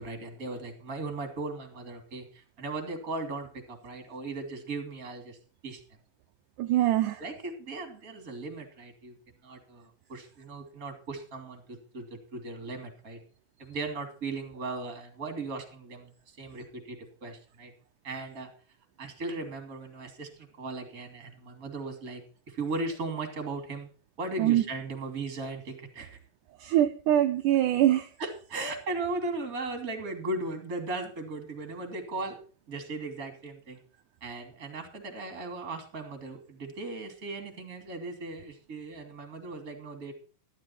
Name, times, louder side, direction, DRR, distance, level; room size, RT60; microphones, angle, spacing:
voice 1, 0.0-5.4 5.6-5.8 7.2-9.2 9.4-13.2 13.6-17.7 18.0-18.5 19.0-23.9 24.2-26.2 28.2-32.4 32.7-33.8 34.2-40.1, right 3 dB, 25° right, 5 dB, 2.7 m, -37 dB
voice 2, 6.6-7.2 24.4-24.6 26.6-28.1, right 12 dB, 75° right, 7 dB, 2.0 m, -23 dB
13.0 x 12.0 x 4.4 m, 0.39 s
omnidirectional pair, 4.0 m